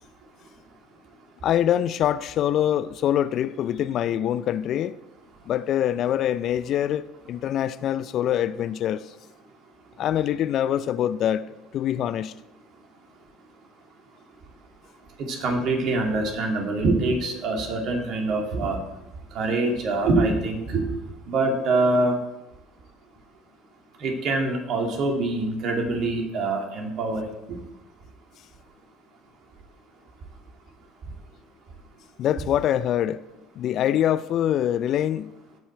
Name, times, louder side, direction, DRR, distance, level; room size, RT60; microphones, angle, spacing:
voice 1, 1.4-5.0 5.5-9.0 10.0-11.5 11.7-12.3 32.2-33.2 33.6-35.3, left 11 dB, 55° left, 0.4 m, -24 dB
voice 2, 15.3-18.8 19.3-20.9 21.3-22.2 24.0-27.2 27.5-27.6, right 2 dB, 55° right, 2.3 m, -24 dB
16.5 x 5.6 x 4.4 m
hypercardioid pair, 65°, 0 cm